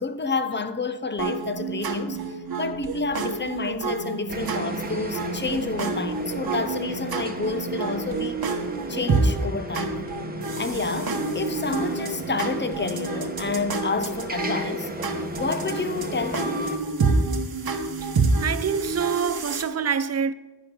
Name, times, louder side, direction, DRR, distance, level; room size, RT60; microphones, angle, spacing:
voice 1, 0.0-8.4 8.9-10.0 10.6-14.9 15.4-16.6, left 4 dB, 25° left, 0.7 m, -29 dB
sound 1, 1.2-19.6, right 3 dB, 55° right, 1.2 m, -28 dB
sound 2, 4.3-16.8, right 2 dB, 20° right, 1.1 m, -35 dB
voice 2, 18.0-20.3, right 7 dB, 40° right, 0.5 m, -26 dB
11.0 x 10.5 x 3.8 m
wide cardioid pair, 80°, 42 cm